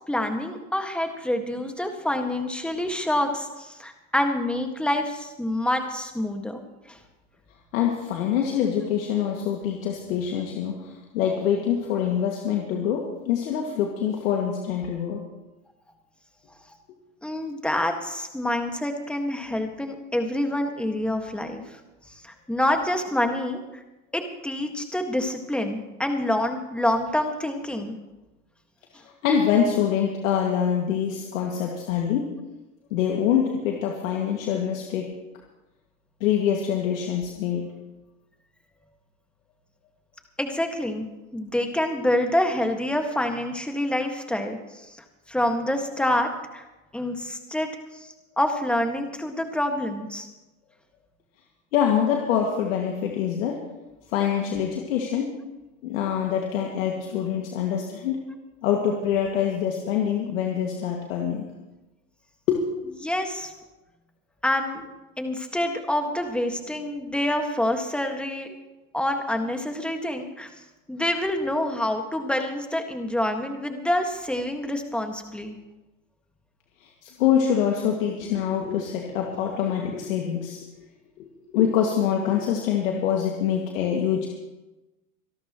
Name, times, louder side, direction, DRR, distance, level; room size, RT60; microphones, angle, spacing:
voice 1, 0.1-6.6 6.9-7.0 17.2-21.6 22.1-23.8 24.1-28.0 40.4-41.1 41.3-46.6 46.9-47.7 47.9-50.3 63.0-63.5 64.4-64.9 65.2-68.6 68.9-70.5 70.9-75.6, left 1 dB, 5° left, 4 dB, 1.8 m, -27 dB
voice 2, 7.7-15.2 29.2-32.3 32.9-35.1 36.2-37.7 51.7-53.6 54.1-55.3 55.8-58.2 58.6-61.4 62.5-62.6 77.0-80.6 81.2-84.3, left 8 dB, 70° left, 0 dB, 2.3 m, -25 dB
25.5 x 12.0 x 3.1 m, 1.1 s
hypercardioid pair, 115°, 41 cm